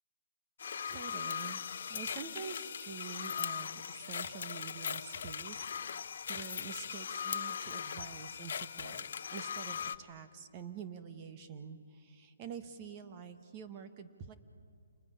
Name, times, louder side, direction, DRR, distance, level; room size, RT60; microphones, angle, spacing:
sound 1, 0.6-10.0, left 7 dB, 60° left, 0.8 m, -39 dB
voice 1, 0.9-6.0 6.3-14.3, right 7 dB, 25° right, 8 dB, 1.3 m, -47 dB
28.5 x 20.5 x 9.9 m, 2.4 s
hypercardioid pair, 155°, 0 cm